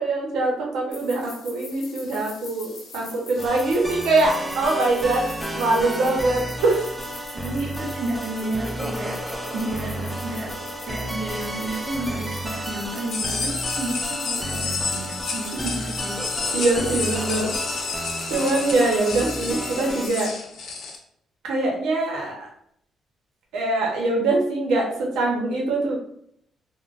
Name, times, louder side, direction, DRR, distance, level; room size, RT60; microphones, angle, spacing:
voice 1, 0.0-5.2 5.5-6.9 15.6-15.7 16.5-17.9 18.3-20.3 21.4-22.5 23.5-26.0, right 2 dB, 85° right, -1 dB, 0.9 m, -23 dB
sound 1, 0.9-20.2, left 3 dB, 90° left, 0.9 m, -44 dB
sound 2, 3.4-20.1, right 1 dB, 5° right, 0.4 m, -32 dB
voice 2, 7.4-10.5 10.9-16.2, right 2 dB, 55° right, -2 dB, 0.7 m, -31 dB
sound 3, 13.1-21.0, left 4 dB, 65° left, 0.6 m, -30 dB
3.6 x 2.2 x 2.4 m, 0.69 s
cardioid pair, 90°, 0 cm